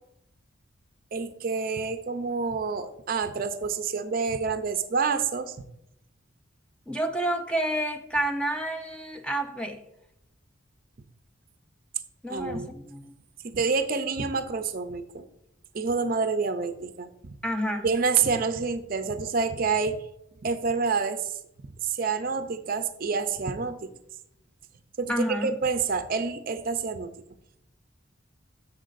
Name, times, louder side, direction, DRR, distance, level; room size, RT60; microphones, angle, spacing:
voice 1, 1.1-5.5 12.3-12.7 13.4-15.2 15.7-17.1 17.8-20.0 20.4-21.3 21.8-23.9 25.0-27.1, right 5 dB, 45° right, 10 dB, 0.5 m, -28 dB
voice 2, 6.9-9.8 12.2-13.1 17.4-17.9 25.1-25.5, right 1 dB, 5° left, 5 dB, 0.5 m, -29 dB
10.5 x 7.3 x 2.5 m, 0.80 s
head